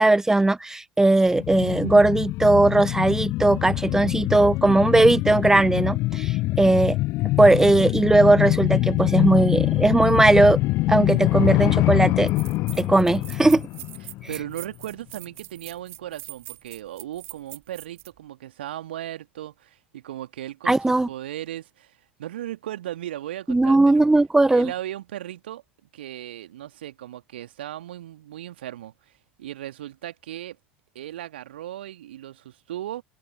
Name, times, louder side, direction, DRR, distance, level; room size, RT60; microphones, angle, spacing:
voice 1, 0.0-7.0 7.4-10.6 10.9-12.3 12.8-13.6 20.7-21.1 23.5-24.7, right 2 dB, 10° right, 0.4 m, -18 dB
sound 1, 1.3-14.5 14.8-14.9, left 19 dB, 45° left, 0.5 m, -24 dB
sound 2, 11.7-11.8 12.3-18.1, right 17 dB, 45° right, 3.1 m, -42 dB
voice 2, 14.0-24.0 24.5-25.6 25.9-29.1 29.4-30.6 30.9-33.0, right 13 dB, 65° right, 2.2 m, -37 dB
figure-of-eight pair, 70°, 6 cm